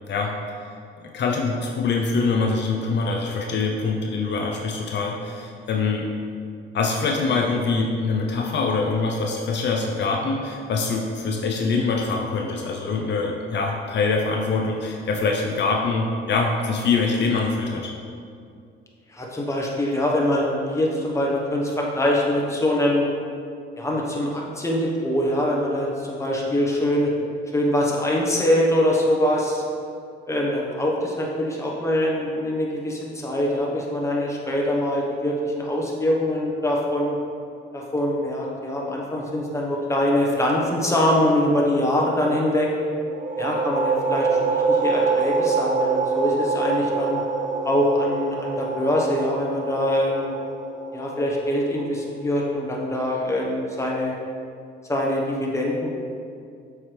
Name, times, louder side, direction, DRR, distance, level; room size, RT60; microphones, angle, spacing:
voice 1, 1.0-6.1 6.7-17.9, left 4 dB, 60° left, 1 dB, 0.6 m, -24 dB
voice 2, 19.1-23.1 23.8-27.1 27.5-29.6 30.3-37.2 37.7-42.7 43.4-47.2 47.6-50.3 50.9-54.1 54.9-55.9, left 1 dB, 15° left, -3 dB, 1.2 m, -23 dB
sound 1, 43.1-52.5, right 4 dB, 40° right, 0.6 m, -25 dB
7.0 x 4.8 x 3.4 m, 2.3 s
cardioid pair, 100°, 20 cm